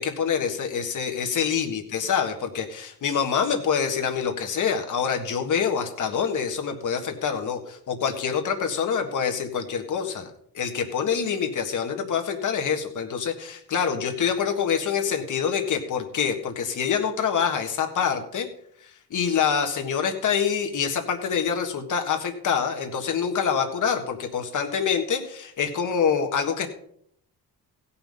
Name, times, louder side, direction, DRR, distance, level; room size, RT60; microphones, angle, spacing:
voice 1, 0.0-10.3 10.5-18.5 19.1-26.7, left 7 dB, 55° left, 4 dB, 1.6 m, -26 dB
16.5 x 5.8 x 5.5 m, 0.68 s
cardioid pair, 130°, 37 cm